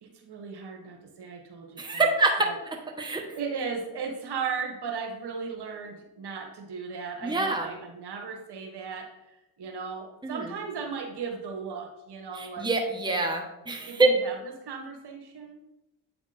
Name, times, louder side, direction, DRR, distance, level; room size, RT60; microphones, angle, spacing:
voice 1, 0.0-2.0 2.4-2.6 3.3-9.1 9.6-12.7 13.9-14.4 14.6-15.6, right 5 dB, 55° right, 2 dB, 1.6 m, -36 dB
voice 2, 1.8-2.4 3.0-3.2 7.2-7.7 10.2-10.5 12.3-14.1, right 3 dB, 10° right, 1 dB, 1.3 m, -25 dB
8.5 x 3.4 x 4.2 m, 0.88 s
hypercardioid pair, 50°, 47 cm